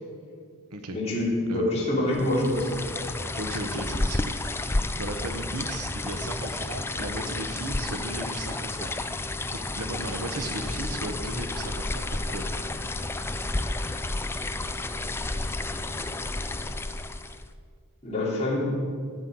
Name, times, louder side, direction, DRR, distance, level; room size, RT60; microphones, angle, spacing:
voice 1, 0.9-2.7 18.0-18.6, left 1 dB, 30° left, -6 dB, 3.3 m, -26 dB
sound 1, 2.1-17.5, left 2 dB, 10° left, 0.3 m, -31 dB
voice 2, 3.4-4.3 4.6-8.9 9.5-12.5, right 2 dB, 85° right, 5 dB, 1.1 m, -36 dB
14.0 x 5.8 x 8.5 m, 2.1 s
head